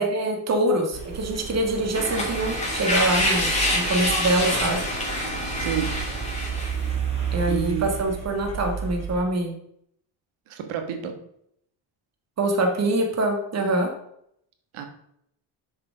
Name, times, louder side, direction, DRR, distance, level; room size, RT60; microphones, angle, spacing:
voice 1, 0.0-4.8 7.3-9.5 12.4-13.9, right 1 dB, 30° right, 2 dB, 1.6 m, -24 dB
sound 1, 0.9-9.2, right 7 dB, 15° right, 2.7 m, -32 dB
sound 2, 1.9-6.9, left 1 dB, 15° left, 2.8 m, -26 dB
voice 2, 5.6-5.9 7.5-7.9 10.5-11.1 14.7-14.9, right 9 dB, 80° right, 6 dB, 1.6 m, -29 dB
7.2 x 4.8 x 5.0 m, 0.73 s
cardioid pair, 125°, 49 cm